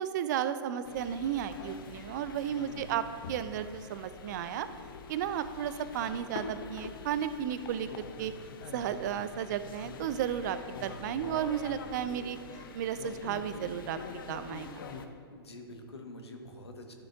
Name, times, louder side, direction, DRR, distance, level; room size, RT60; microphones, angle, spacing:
voice 1, 0.0-4.7 5.1-8.3 8.7-12.4 12.7-14.0 14.3-14.8, right 9 dB, 45° right, 12 dB, 0.4 m, -33 dB
sound 1, 0.8-15.1, left 5 dB, 55° left, 0.7 m, -45 dB
voice 2, 2.5-3.0 15.3-16.9, left 1 dB, 80° left, 4 dB, 1.1 m, -47 dB
11.5 x 7.5 x 2.4 m, 2.2 s
figure-of-eight pair, 110°, 13 cm